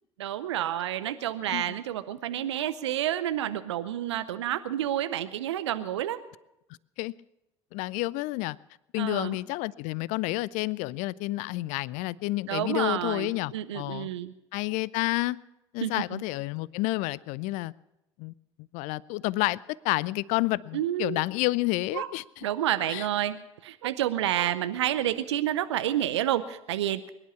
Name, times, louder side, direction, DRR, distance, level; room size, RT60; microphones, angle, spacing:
voice 1, 0.2-6.2 9.0-9.4 12.5-14.3 15.8-16.2 20.7-21.2 21.9-22.1 22.4-23.4 23.6-27.1, right 12 dB, 75° right, 13 dB, 0.7 m, -29 dB
voice 2, 7.7-8.6 8.9-14.1 14.5-15.4 15.7-17.7 18.2-18.3 18.7-22.5 22.9-23.1, left 20 dB, 60° left, 23 dB, 0.4 m, -30 dB
22.0 x 11.0 x 5.8 m, 0.90 s
figure-of-eight pair, 60°, 15 cm